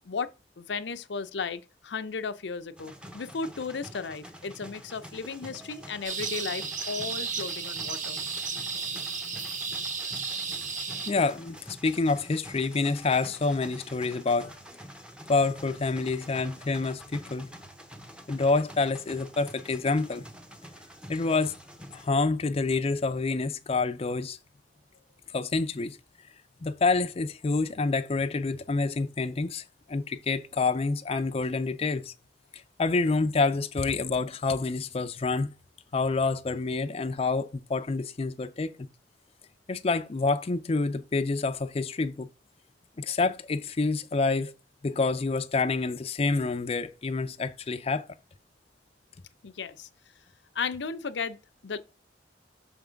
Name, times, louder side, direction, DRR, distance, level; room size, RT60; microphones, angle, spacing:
voice 1, 0.0-8.2 49.4-49.9 50.5-51.4 51.6-51.8, left 5 dB, 85° left, 0.6 m, -35 dB
sound 1, 2.8-22.1, equal, 5° right, 0.8 m, -47 dB
sound 2, 6.0-11.1, right 5 dB, 45° right, 1.1 m, -33 dB
voice 2, 11.1-14.5 15.3-17.5 18.3-20.2 21.1-21.5 21.9-24.4 25.3-26.0 26.6-32.1 32.5-35.5 35.9-38.8 39.7-42.3 43.0-44.5 44.8-48.1, left 3 dB, 35° left, 0.4 m, -27 dB
6.4 x 3.5 x 5.0 m
head